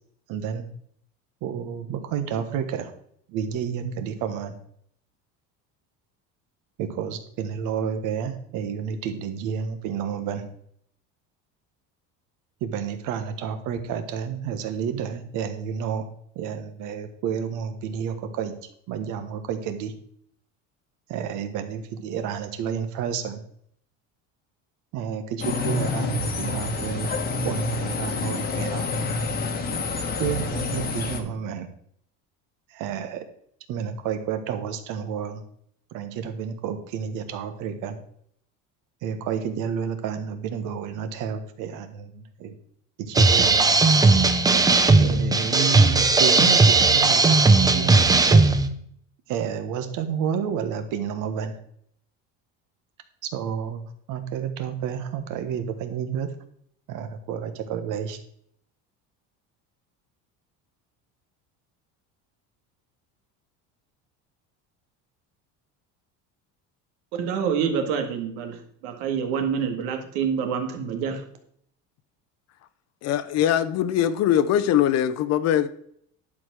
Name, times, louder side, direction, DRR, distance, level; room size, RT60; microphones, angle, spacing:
voice 1, 0.3-0.7 1.4-2.9 3.3-4.5 6.8-10.4 12.6-16.1 16.3-18.5 18.9-19.9 21.1-23.4 24.9-27.1 27.4-29.1 30.2-31.7 32.7-33.2 33.7-35.4 35.9-38.0 39.0-42.1 42.4-42.6 43.0-43.7 45.0-48.4 49.3-51.6 53.2-53.8 54.1-56.3 56.9-58.2, right 7 dB, 65° right, 1.5 m, -30 dB
sound 1, 25.4-31.2, left 3 dB, 25° left, 1.3 m, -28 dB
sound 2, 43.1-48.7, right 3 dB, 10° right, 0.6 m, -17 dB
voice 2, 67.1-71.2, right 7 dB, 85° right, 2.0 m, -27 dB
voice 3, 73.0-75.7, left 10 dB, 50° left, 0.8 m, -22 dB
11.0 x 5.0 x 6.2 m
cardioid pair, 150°, 34 cm